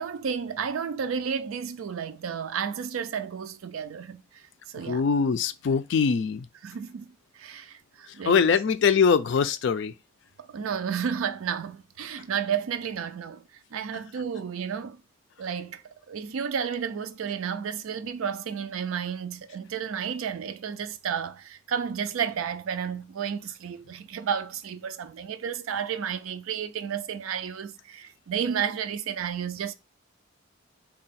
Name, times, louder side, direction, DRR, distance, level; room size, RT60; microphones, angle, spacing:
voice 1, 0.0-5.0 6.6-7.1 7.3-8.5 10.4-13.4 13.7-15.0 15.4-29.7, right 7 dB, 80° right, 0.4 m, -32 dB
voice 2, 4.9-6.5 8.3-9.9, left 6 dB, 60° left, 0.3 m, -22 dB
3.7 x 2.3 x 4.1 m
head